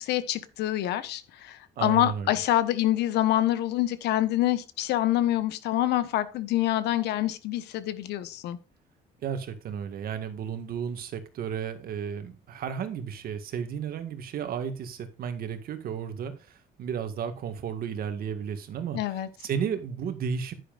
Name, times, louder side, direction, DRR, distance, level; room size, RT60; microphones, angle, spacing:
voice 1, 0.0-8.6 18.9-19.3, left 14 dB, 80° left, 1.2 m, -26 dB
voice 2, 1.8-2.4 9.2-20.5, right 7 dB, 60° right, 1.8 m, -33 dB
10.5 x 9.9 x 2.6 m
cardioid pair, 110°, 17 cm